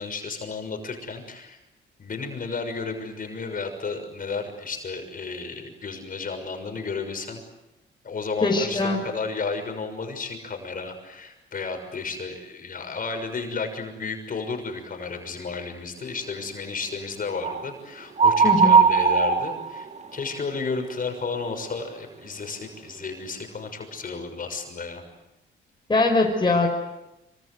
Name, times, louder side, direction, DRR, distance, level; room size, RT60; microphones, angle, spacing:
voice 1, 0.0-1.6 2.0-7.4 8.0-25.0, left 4 dB, 45° left, 5 dB, 6.4 m, -33 dB
voice 2, 8.4-9.0 18.4-18.7 25.9-26.7, left 2 dB, 25° left, 1 dB, 5.4 m, -21 dB
sound 1, 17.4-17.7 18.2-20.2, right 5 dB, 35° right, 2.2 m, -19 dB
26.5 x 25.5 x 8.1 m, 0.96 s
cardioid pair, 90°, 20 cm